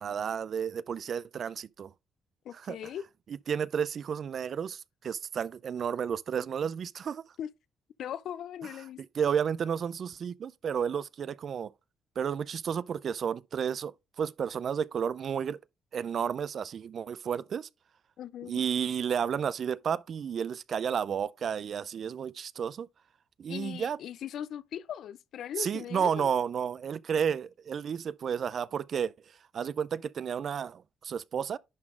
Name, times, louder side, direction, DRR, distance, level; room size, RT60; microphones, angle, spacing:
voice 1, 0.0-1.9 2.5-2.8 3.5-7.2 9.2-11.7 12.2-15.6 15.9-17.7 18.4-22.9 23.4-24.0 25.6-29.1 29.5-31.6, right 7 dB, 55° right, 0.4 m, -32 dB
voice 2, 2.4-3.1 7.4-7.5 8.0-9.0 18.2-18.6 23.5-26.3, left 10 dB, 70° left, 0.4 m, -39 dB
10.5 x 3.8 x 3.7 m
cardioid pair, 90°, 0 cm